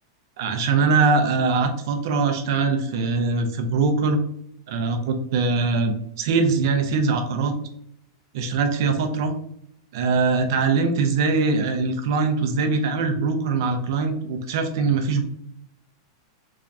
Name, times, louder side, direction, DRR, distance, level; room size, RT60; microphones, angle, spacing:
voice 1, 0.4-4.2 4.7-7.5 8.3-9.3 9.9-15.2, right 4 dB, 65° right, 6 dB, 0.7 m, -22 dB
3.6 x 3.3 x 2.6 m, 0.71 s
supercardioid pair, 140°, 2 cm